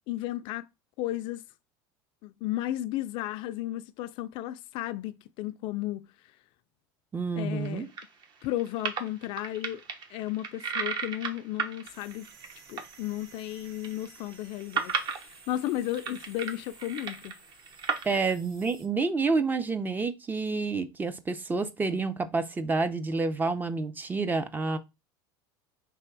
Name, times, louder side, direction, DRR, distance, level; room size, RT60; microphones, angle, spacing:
voice 1, 0.1-0.7 1.0-1.4 2.2-6.1 7.4-7.9 8.4-9.8 10.1-12.3 12.7-17.3 18.1-18.2, left 14 dB, 55° left, 0.4 m, -34 dB
voice 2, 7.1-7.9 18.0-24.8, right 4 dB, 15° right, 0.5 m, -29 dB
sound 1, 7.7-12.9 13.2-13.3 13.6-18.0, right 5 dB, 45° right, 0.9 m, -35 dB
sound 2, 11.8-18.9, right 4 dB, 60° right, 1.4 m, -54 dB
3.4 x 3.0 x 4.6 m
supercardioid pair, 110°, 10 cm